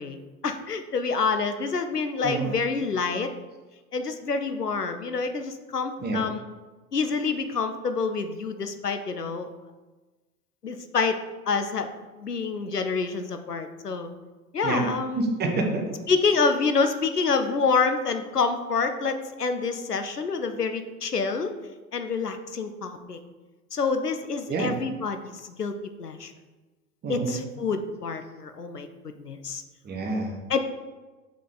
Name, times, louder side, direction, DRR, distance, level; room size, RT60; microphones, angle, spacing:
voice 1, 0.0-3.3 3.9-6.4 6.9-9.5 10.6-11.2 11.5-11.9 12.2-14.1 14.5-15.2 16.1-21.5 21.9-23.2 23.7-25.2 25.6-26.3 27.1-29.6 30.5-30.6, left 4 dB, 90° left, 8 dB, 0.7 m, -27 dB
voice 2, 2.2-2.5 6.0-6.3 14.6-14.9 15.1-15.8 24.5-24.8 27.0-27.4 29.8-30.4, right 3 dB, 20° right, 2 dB, 1.3 m, -27 dB
6.6 x 5.3 x 3.9 m, 1.2 s
figure-of-eight pair, 85°, 46 cm